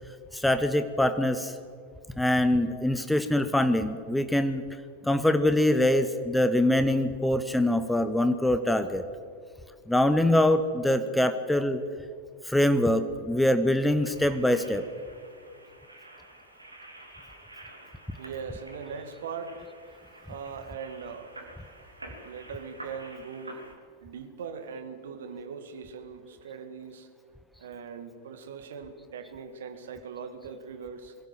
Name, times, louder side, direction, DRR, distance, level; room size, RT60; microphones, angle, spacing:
voice 1, 0.3-1.5 2.2-4.6 5.0-9.0 9.9-11.8 12.4-14.8, left 1 dB, 5° left, 10 dB, 1.0 m, -24 dB
sound 1, 14.0-23.7, right 1 dB, 80° right, 2.6 m, -49 dB
voice 2, 18.2-19.6 20.3-21.4 22.2-23.6 24.0-27.1 27.6-31.2, right 6 dB, 60° right, 9 dB, 1.9 m, -40 dB
22.5 x 16.0 x 7.7 m, 2.1 s
figure-of-eight pair, 90°, 0 cm